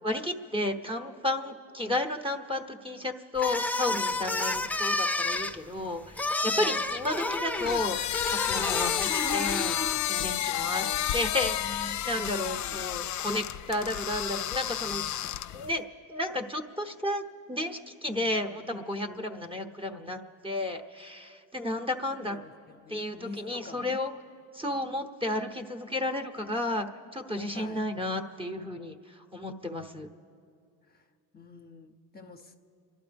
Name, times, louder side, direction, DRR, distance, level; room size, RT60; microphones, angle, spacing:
voice 1, 0.0-8.0 8.3-9.8 10.0-10.8 11.1-15.0 15.5-22.4 22.9-24.1 24.5-26.9 27.1-30.1, left 1 dB, 15° right, 2 dB, 0.9 m, -32 dB
sound 1, 3.4-10.0, left 2 dB, 5° left, 0.5 m, -30 dB
voice 2, 6.6-7.1 10.8-12.8 18.1-18.7 22.3-24.0 27.5-27.8 30.9-31.1 31.3-32.7, left 3 dB, 25° left, 4 dB, 0.8 m, -47 dB
sound 2, 7.5-15.7, left 12 dB, 50° left, 0.5 m, -31 dB
29.5 x 12.0 x 3.5 m, 2.3 s
supercardioid pair, 80°, 37 cm